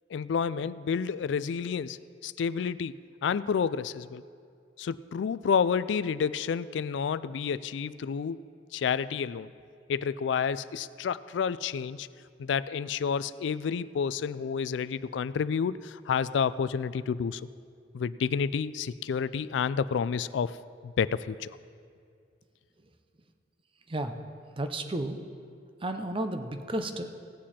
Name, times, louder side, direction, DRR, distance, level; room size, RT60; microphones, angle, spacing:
voice 1, 0.1-4.2 4.8-8.4 8.7-9.5 9.9-12.1 12.4-17.4 17.9-20.5 20.8-21.5, left 6 dB, 80° left, 16 dB, 0.3 m, -30 dB
voice 2, 24.5-25.2 25.8-27.1, right 1 dB, 30° right, 7 dB, 0.7 m, -32 dB
17.5 x 7.4 x 4.3 m, 2.3 s
head